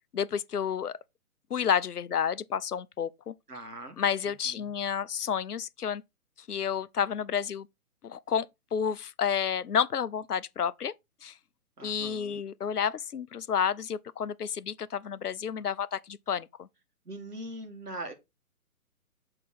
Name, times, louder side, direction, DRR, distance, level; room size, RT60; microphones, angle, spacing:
voice 1, 0.1-0.9 1.5-3.3 4.0-6.0 6.5-7.7 8.0-10.9 11.2-11.3 11.8-16.7, left 8 dB, 85° left, 0.6 m, -30 dB
voice 2, 3.5-4.0 4.4-4.7 11.8-12.4 17.1-18.1, right 1 dB, 90° right, 1.9 m, -41 dB
7.4 x 3.8 x 4.3 m
figure-of-eight pair, 135°, 45 cm